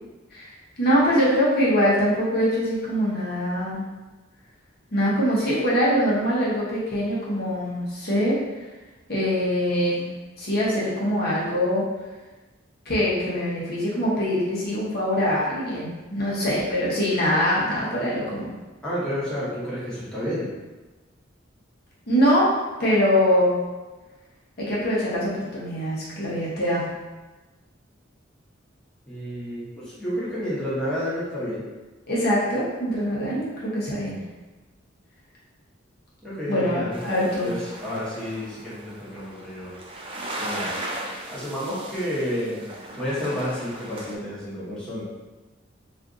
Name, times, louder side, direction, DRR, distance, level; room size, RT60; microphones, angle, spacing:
voice 1, 0.8-3.8 4.9-8.4 9.1-10.1 10.4-11.8 12.9-18.5 22.1-22.5 22.8-23.6 24.6-26.9 32.1-34.2 36.5-37.5, equal, 50° left, -7 dB, 0.8 m, -23 dB
voice 2, 18.8-20.5 29.1-31.7 36.2-37.0 37.4-39.7 40.4-40.7 41.3-42.7 43.0-45.0, equal, 5° left, -10 dB, 0.9 m, -30 dB
sound 1, 36.9-44.1, right 1 dB, 25° right, 0.3 m, -37 dB
2.5 x 2.4 x 3.6 m, 1.2 s
head